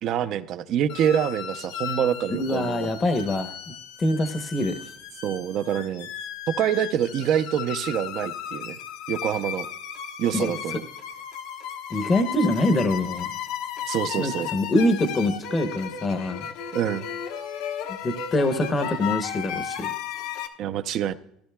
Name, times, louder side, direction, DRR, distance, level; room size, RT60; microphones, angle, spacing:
voice 1, 0.0-2.9 5.2-6.1 6.5-8.8 9.1-9.7 10.2-10.8 13.9-14.5 16.7-17.1 20.6-21.1, right 9 dB, 50° right, 12 dB, 0.5 m, -26 dB
sound 1, 0.9-20.5, left 9 dB, 75° left, 1.0 m, -35 dB
voice 2, 2.3-3.5 4.0-4.8 10.3-10.5 11.9-13.3 14.2-16.4 18.0-19.9, left 1 dB, 20° left, 7 dB, 0.8 m, -24 dB
16.0 x 11.0 x 2.2 m, 0.74 s
cardioid pair, 145°, 0 cm